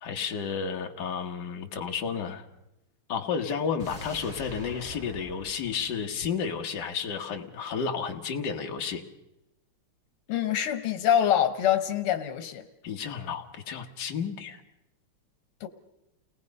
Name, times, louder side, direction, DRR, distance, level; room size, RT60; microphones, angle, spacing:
voice 1, 0.0-2.4 3.1-9.0 12.8-14.6, left 6 dB, 55° left, 3 dB, 2.0 m, -32 dB
sound 1, 3.8-6.9 7.2-7.3, right 1 dB, 30° right, 3.1 m, -45 dB
voice 2, 10.3-12.6 15.6-15.7, left 10 dB, 85° left, 9 dB, 2.0 m, -25 dB
30.0 x 19.5 x 5.4 m, 0.90 s
omnidirectional pair, 2.4 m